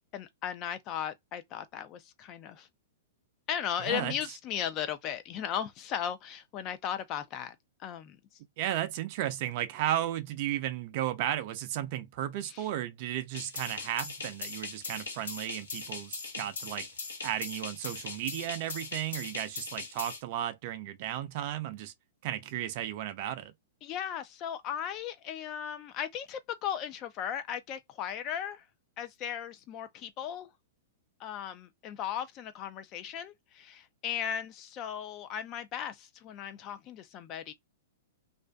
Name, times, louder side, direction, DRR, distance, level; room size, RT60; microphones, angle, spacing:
voice 1, 0.1-2.7 3.5-8.2 12.5-12.6 23.8-28.6 29.0-30.5 31.2-37.5, left 9 dB, 35° left, 0.5 m, -36 dB
voice 2, 3.8-4.1 8.6-16.9 17.2-21.9 22.2-23.5, right 12 dB, 50° right, 0.5 m, -34 dB
sound 1, 13.3-20.2, left 4 dB, 85° left, 1.2 m, -40 dB
2.5 x 2.4 x 2.2 m
hypercardioid pair, 125°, 0 cm